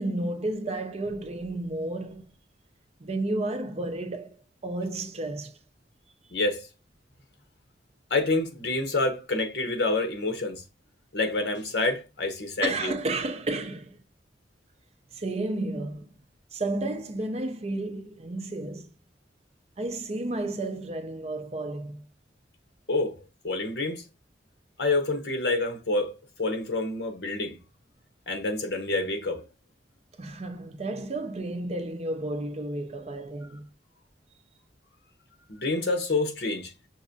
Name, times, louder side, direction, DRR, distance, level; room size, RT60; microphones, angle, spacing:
voice 1, 0.0-2.2 3.0-4.4 4.6-5.6 12.6-14.0 15.1-16.1 16.5-18.9 19.8-22.1 30.2-33.7, right 2 dB, 35° right, 0.5 m, -32 dB
voice 2, 6.3-6.7 8.1-10.6 11.1-12.9 22.9-24.0 24.8-26.1 26.4-27.6 28.3-29.4 35.5-36.7, left 2 dB, 65° left, 1.0 m, -27 dB
5.9 x 2.5 x 2.6 m
head